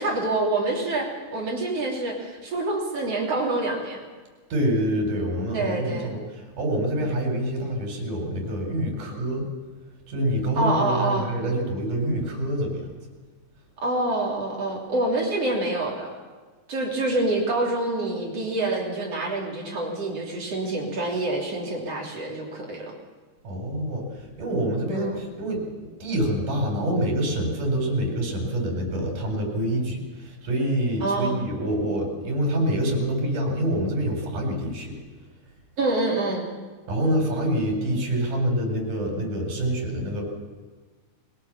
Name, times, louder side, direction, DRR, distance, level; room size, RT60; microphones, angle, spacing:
voice 1, 0.0-4.1 5.5-6.1 10.6-11.3 13.8-16.2 16.7-22.9 24.9-25.2 31.0-31.4 35.8-36.5, right 2 dB, 50° right, -1 dB, 4.1 m, -26 dB
voice 2, 4.5-9.5 10.1-12.9 23.4-35.0 36.9-40.2, right 1 dB, 75° right, 1 dB, 5.6 m, -26 dB
21.0 x 17.0 x 7.3 m, 1.4 s
omnidirectional pair, 3.7 m